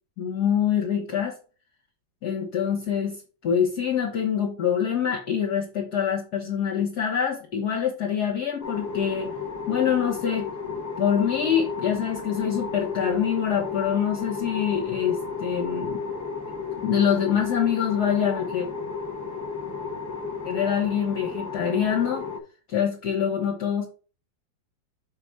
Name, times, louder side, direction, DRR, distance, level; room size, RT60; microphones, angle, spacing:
voice 1, 0.2-1.3 2.2-9.3 9.7-10.5 11.0-16.0 16.8-18.7 20.5-22.3 22.7-23.9, left 8 dB, 60° left, 0 dB, 1.9 m, -25 dB
sound 1, 8.6-22.4, left 5 dB, 15° left, 0.7 m, -33 dB
6.2 x 4.2 x 4.8 m, 0.36 s
omnidirectional pair, 2.0 m